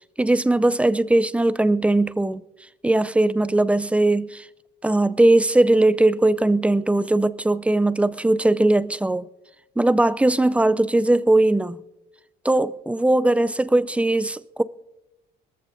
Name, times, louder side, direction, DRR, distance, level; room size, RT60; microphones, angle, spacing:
voice 1, 0.2-2.4 2.8-4.5 4.8-9.3 9.8-11.8 12.4-14.6, right 2 dB, 5° right, 0.4 m, -19 dB
22.0 x 14.0 x 2.6 m
cardioid pair, 110°, 17 cm